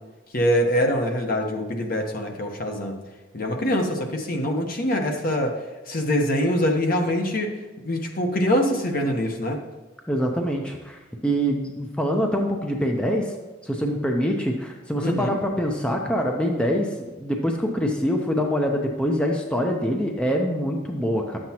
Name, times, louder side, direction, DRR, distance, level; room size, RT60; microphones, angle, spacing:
voice 1, 0.3-3.0 3.3-5.6 5.9-7.5 7.8-9.6 15.0-15.4, equal, 50° left, 2 dB, 1.1 m, -24 dB
voice 2, 10.1-13.3 13.6-16.9 17.2-21.4, equal, 5° left, 1 dB, 0.6 m, -24 dB
10.5 x 7.7 x 2.9 m, 1.3 s
head